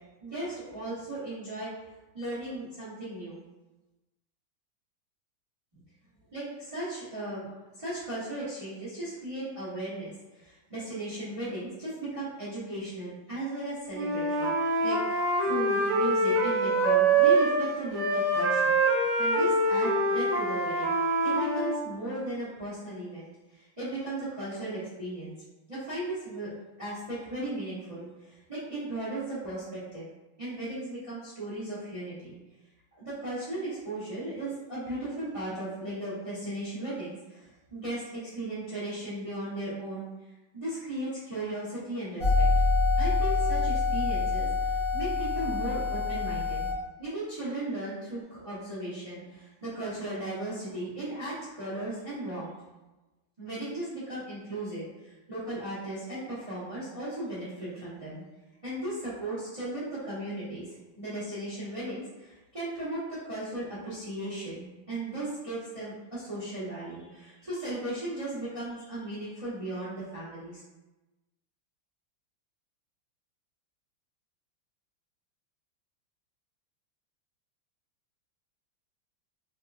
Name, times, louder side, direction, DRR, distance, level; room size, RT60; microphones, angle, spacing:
voice 1, 0.2-1.7 2.1-3.4 6.3-7.5 7.8-14.5 14.8-18.8 19.2-21.0 21.2-23.3 23.6-25.3 25.7-26.5 26.8-30.1 30.4-32.4 32.9-40.1 40.5-42.5 43.0-46.7 47.0-52.5 53.4-58.2 58.6-60.7 60.9-70.6, right 1 dB, 45° right, -12 dB, 0.4 m, -36 dB
Wind instrument woodwind instrument, 13.9-17.6 17.9-21.8, right 2 dB, 70° right, 1.0 m, -25 dB
sound 1, 42.2-46.7, left 3 dB, 60° left, 0.8 m, -26 dB
4.2 x 2.3 x 2.5 m, 1.1 s
omnidirectional pair, 2.3 m